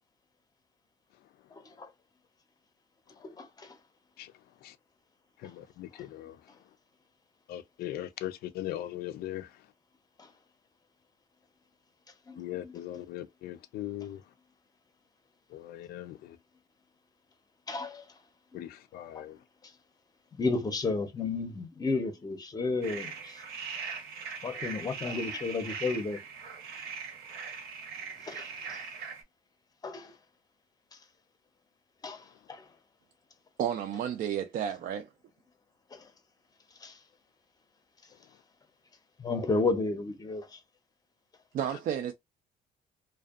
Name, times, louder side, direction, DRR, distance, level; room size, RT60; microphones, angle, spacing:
voice 1, 1.5-1.9 3.2-3.8 10.2-10.3 12.3-12.7 17.7-18.0 18.5-18.6 19.1-19.2 20.3-23.4 24.4-26.2 28.2-28.8 29.8-30.1 32.0-32.6 35.9-36.1 36.8-37.0 39.2-40.6, left 3 dB, 20° left, 0.6 m, -33 dB
voice 2, 5.4-6.4 7.5-9.6 12.4-14.2 15.5-16.4 18.5-19.4, left 13 dB, 65° left, 0.4 m, -39 dB
sound 1, 22.8-29.2, right 5 dB, 70° right, 0.9 m, -40 dB
voice 3, 33.6-35.1 41.5-42.1, right 9 dB, 55° right, 0.4 m, -31 dB
2.5 x 2.2 x 2.4 m
cardioid pair, 110°, 17 cm